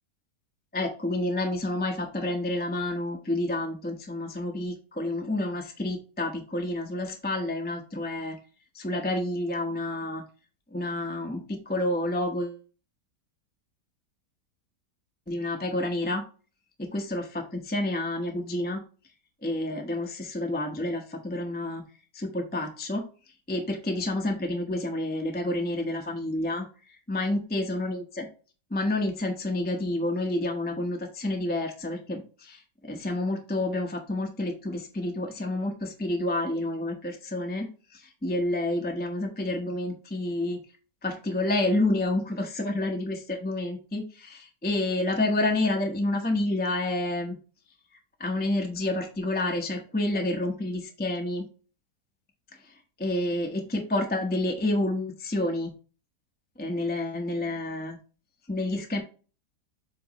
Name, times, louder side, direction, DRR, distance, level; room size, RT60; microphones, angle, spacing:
voice 1, 0.7-8.4 8.7-10.2 10.7-12.6 15.3-16.2 16.8-18.8 19.4-21.8 22.1-23.0 23.5-26.6 27.1-28.3 28.7-40.6 41.0-47.3 48.2-51.5 53.0-55.7 56.6-58.0 58.5-59.0, left 1 dB, 10° left, 2 dB, 0.6 m, -29 dB
7.7 x 3.1 x 4.1 m, 0.36 s
omnidirectional pair, 1.8 m